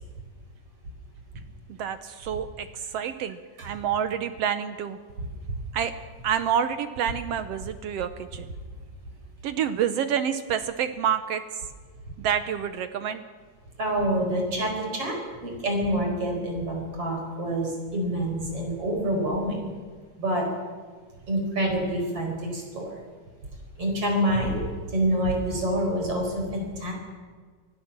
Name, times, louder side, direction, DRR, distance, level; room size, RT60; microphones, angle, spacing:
voice 1, 1.8-5.0 5.7-5.9 6.2-8.5 9.4-11.4 12.2-13.2, right 8 dB, 75° right, 10 dB, 1.4 m, -28 dB
voice 2, 13.8-19.7 20.2-20.5 21.3-23.0 23.8-26.9, right 1 dB, 45° right, 2 dB, 5.5 m, -27 dB
24.5 x 16.5 x 7.4 m, 1.5 s
omnidirectional pair, 3.7 m